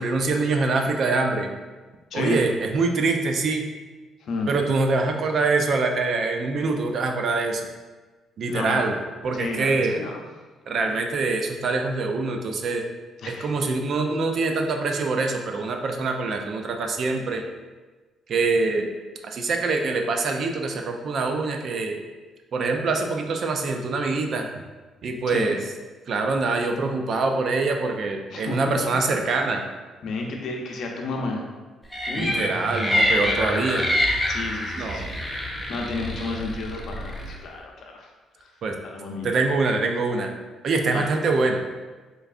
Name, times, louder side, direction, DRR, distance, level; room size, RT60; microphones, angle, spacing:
voice 1, 0.0-1.5 2.1-3.7 4.5-7.6 8.4-9.0 9.2-10.0 10.7-12.9 13.3-17.4 18.3-18.9 19.2-22.0 22.5-24.5 25.0-25.6 26.1-29.6 32.1-33.9 34.8-35.1 38.6-38.8 39.2-40.3 40.6-41.6, right 3 dB, 55° right, 4 dB, 0.4 m, -24 dB
voice 2, 2.1-2.4 4.2-4.5 8.5-8.9 9.3-10.2 13.2-13.5 25.3-25.5 28.3-28.6 30.0-31.4 32.1-32.4 34.3-35.2 35.7-38.1 38.8-39.3 40.9-41.1, left 3 dB, 65° left, 1 dB, 0.6 m, -31 dB
sound 1, 31.9-37.3, left 1 dB, ahead, 0.6 m, -26 dB
3.8 x 3.1 x 2.5 m, 1.3 s
cardioid pair, 90°, 0 cm